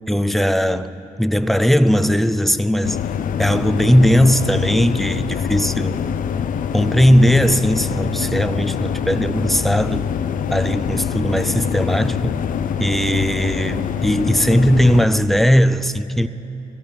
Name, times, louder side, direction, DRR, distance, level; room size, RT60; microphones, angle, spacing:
voice 1, 0.1-3.0 3.4-6.0 6.7-10.1 10.5-12.4 12.8-16.3, equal, ahead, 11 dB, 0.4 m, -18 dB
sound 1, 2.8-15.1, left 8 dB, 60° left, 0.6 m, -24 dB
17.0 x 15.0 x 5.6 m, 3.0 s
cardioid pair, 110°, 15 cm